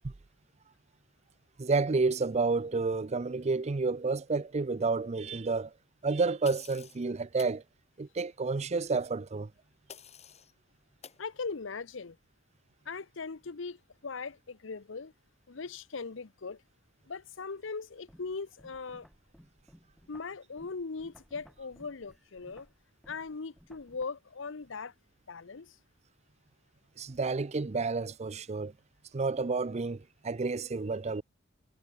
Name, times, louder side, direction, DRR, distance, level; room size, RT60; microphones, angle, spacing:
voice 1, 1.6-5.7 6.0-7.6 8.0-9.5 27.0-28.7 29.1-31.2, right 4 dB, 35° right, 0.5 m, -30 dB
sound 1, 6.4-7.0 7.4-7.6 9.9-10.5 11.0-11.2, left 7 dB, 35° left, 3.8 m, -49 dB
voice 2, 11.2-12.2 12.9-15.1 15.5-16.6 17.1-19.1 20.1-22.7 23.1-24.9 25.3-25.8, left 4 dB, 65° left, 0.8 m, -39 dB
sound 2, 18.1-24.1, equal, ahead, 6.9 m, -59 dB
head